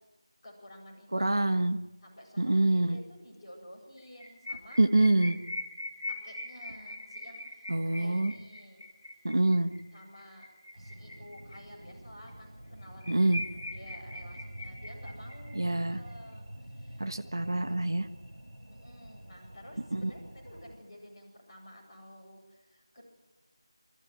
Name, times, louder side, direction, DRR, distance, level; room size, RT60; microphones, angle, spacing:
voice 1, 0.4-1.6 2.0-4.8 6.0-8.8 9.9-10.4 10.7-13.3 13.7-17.0 17.3-17.9 18.7-23.0, equal, 10° left, -13 dB, 5.0 m, -52 dB
voice 2, 1.1-1.8 2.4-3.0 4.8-5.4 7.7-8.3 9.2-9.7 13.1-13.4 15.5-16.0 17.0-18.1 19.9-20.1, right 2 dB, 50° right, 8 dB, 1.4 m, -26 dB
sound 1, 4.0-11.9 12.3-12.4 12.7-12.8 13.0-16.1, left 1 dB, 45° left, 4.7 m, -42 dB
sound 2, 10.7-20.8, right 1 dB, 80° right, 5.3 m, -47 dB
24.5 x 14.0 x 9.3 m, 1.1 s
figure-of-eight pair, 180°, 3 cm